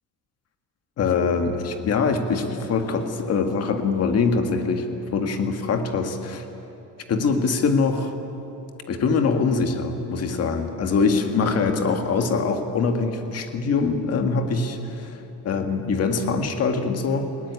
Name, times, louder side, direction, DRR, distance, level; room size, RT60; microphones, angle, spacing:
voice 1, 1.0-4.9 5.1-6.4 7.1-8.1 8.9-17.3, left 4 dB, 45° left, 6 dB, 1.7 m, -23 dB
19.5 x 18.5 x 9.7 m, 3.0 s
cardioid pair, 175°, 34 cm